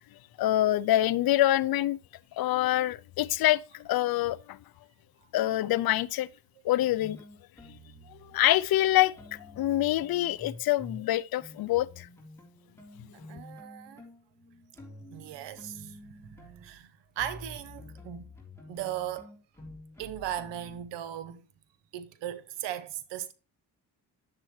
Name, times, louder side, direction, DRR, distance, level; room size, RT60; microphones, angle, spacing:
voice 1, 0.4-2.0 2.4-4.6 5.3-6.3 6.6-7.2 8.2-12.1, left 14 dB, 60° left, 0.5 m, -26 dB
sound 1, 7.0-11.1 11.4-20.9, left 2 dB, 5° left, 3.5 m, -49 dB
voice 2, 13.3-14.0 15.1-18.3 18.7-19.4 20.0-21.4 21.9-23.3, right 11 dB, 90° right, 0.9 m, -38 dB
9.9 x 7.5 x 3.2 m
cardioid pair, 75°, 42 cm